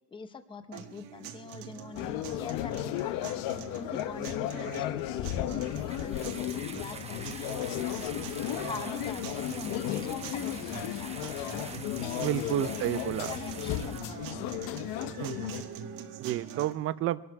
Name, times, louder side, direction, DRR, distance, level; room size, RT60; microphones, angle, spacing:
voice 1, 0.1-3.4 3.7-8.1 8.4-11.4 12.0-12.9 13.3-14.5, left 4 dB, 15° left, 10 dB, 0.7 m, -44 dB
sound 1, 0.7-16.7, right 8 dB, 55° right, 1.5 m, -44 dB
sound 2, 2.0-15.6, left 13 dB, 60° left, 0.8 m, -34 dB
sound 3, 5.6-14.0, right 5 dB, 15° right, 0.9 m, -45 dB
voice 2, 12.2-13.3 15.2-15.6 16.2-17.2, right 14 dB, 35° right, 16 dB, 0.5 m, -31 dB
22.5 x 12.0 x 4.7 m, 1.2 s
cardioid pair, 145°, 40 cm